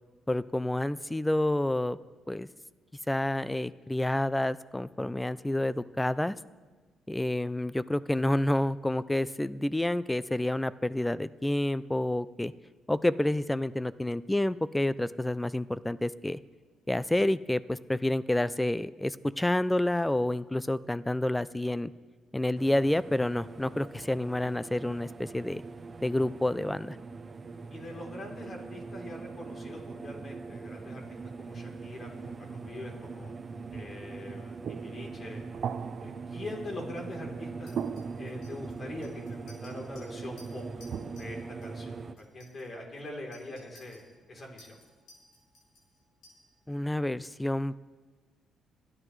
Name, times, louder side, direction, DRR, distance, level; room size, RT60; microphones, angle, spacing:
voice 1, 0.3-2.0 2.3-2.5 3.1-6.3 7.1-12.5 12.9-16.4 16.9-21.9 22.3-25.6 26.0-27.0 46.7-47.8, left 1 dB, 10° left, 17 dB, 0.4 m, -29 dB
sound 1, 22.6-42.1, right 4 dB, 30° right, 0.7 m, -42 dB
voice 2, 27.7-31.0 31.4-33.3 33.7-35.4 36.0-37.8 38.1-40.6 41.2-44.8, left 2 dB, 40° left, 0 dB, 3.5 m, -43 dB
sound 2, 33.3-37.4 37.8-39.2 40.4-42.4, right 8 dB, 60° right, 0.5 m, -41 dB
Chink clink, 37.7-41.3 41.6-41.9 42.2-46.7, left 2 dB, 80° left, 5.0 m, -58 dB
29.5 x 9.9 x 3.2 m, 1.3 s
cardioid pair, 90°, 0 cm